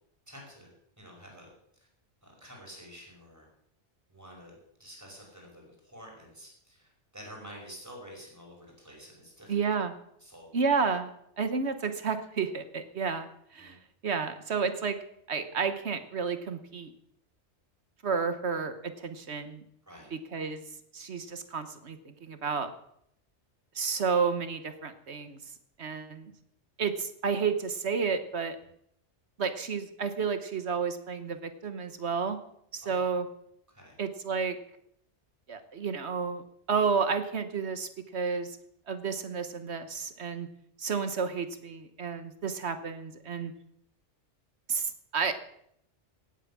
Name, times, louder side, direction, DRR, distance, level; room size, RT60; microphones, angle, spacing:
voice 1, 0.3-1.5 1.7-1.9 2.2-3.5 4.1-4.5 4.8-9.6 10.2-10.6 13.6-13.8 19.8-20.1 32.8-33.1 33.7-34.0, equal, 15° right, -1 dB, 5.4 m, -49 dB
voice 2, 9.5-9.9 10.5-11.1 11.4-13.8 14.0-15.0 15.3-16.9 18.0-19.6 20.1-20.6 20.9-22.7 23.7-25.4 25.8-26.3 26.8-28.6 29.4-32.4 32.7-33.3 34.0-34.6 35.5-36.4 36.7-38.6 38.9-40.5 40.8-43.5 44.7-45.3, right 5 dB, 65° right, 10 dB, 1.4 m, -31 dB
17.5 x 8.9 x 7.2 m, 0.74 s
omnidirectional pair, 1.2 m